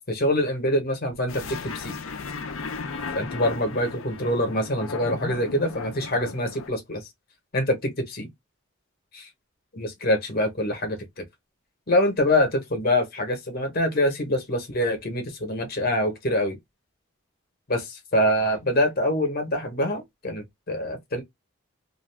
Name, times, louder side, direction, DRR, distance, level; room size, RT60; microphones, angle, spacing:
voice 1, 0.1-1.9 3.1-7.0 7.5-8.3 9.1-9.3 9.7-11.2 11.9-16.6 17.7-21.2, left 1 dB, 45° left, 0.9 m, -25 dB
sound 1, 1.3-6.7, left 4 dB, 70° left, 0.5 m, -36 dB
2.5 x 2.3 x 3.3 m
head